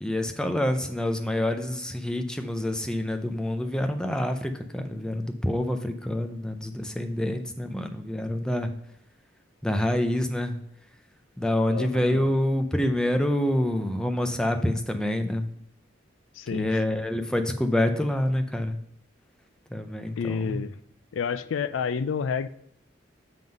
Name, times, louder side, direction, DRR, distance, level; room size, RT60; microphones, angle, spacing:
voice 1, 0.0-8.7 9.6-10.6 11.4-15.5 16.5-18.8 19.7-20.6, left 1 dB, 5° left, 6 dB, 0.5 m, -27 dB
voice 2, 11.7-12.2 16.4-16.8 20.2-20.8 21.1-22.5, left 6 dB, 90° left, 14 dB, 0.4 m, -30 dB
7.7 x 3.7 x 5.2 m, 0.74 s
head